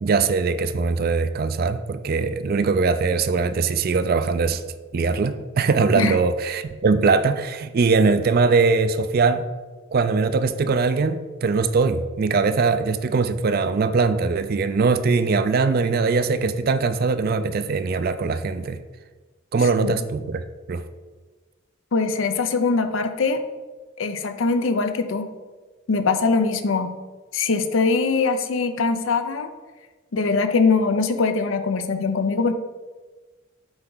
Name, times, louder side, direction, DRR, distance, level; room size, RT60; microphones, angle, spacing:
voice 1, 0.0-4.6 4.9-9.4 9.9-18.8 19.5-20.4 20.7-20.8, right 4 dB, 45° right, 11 dB, 0.4 m, -21 dB
voice 2, 21.9-23.4 24.0-25.3 25.9-27.0 27.3-29.5 30.1-32.5, left 4 dB, 70° left, 9 dB, 0.6 m, -22 dB
7.9 x 4.5 x 3.9 m, 1.3 s
head